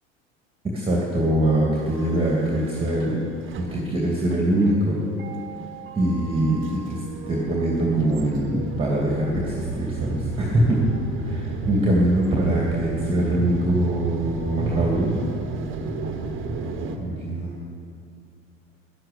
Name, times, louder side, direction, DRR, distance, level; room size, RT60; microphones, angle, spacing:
voice 1, 0.7-3.2 3.6-5.0 5.9-10.8 11.2-15.1 17.0-17.5, right 1 dB, 15° right, -3 dB, 2.3 m, -23 dB
sound 1, 1.8-17.0, right 2 dB, 35° right, 1.4 m, -32 dB
12.0 x 11.0 x 6.9 m, 2.4 s
figure-of-eight pair, 70°, 37 cm